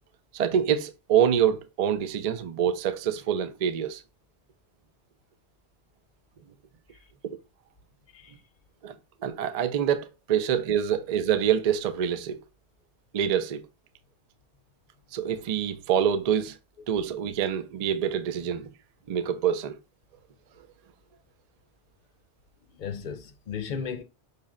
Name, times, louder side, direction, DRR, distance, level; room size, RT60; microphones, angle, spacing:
voice 1, 0.3-4.0 7.2-7.4 8.8-8.9 9.2-12.4 13.1-13.6 15.1-16.6 16.9-18.7 19.1-19.8, right 9 dB, 65° right, 0.4 m, -26 dB
voice 2, 22.7-24.0, left 6 dB, 55° left, 0.6 m, -35 dB
5.6 x 2.1 x 3.6 m
omnidirectional pair, 1.2 m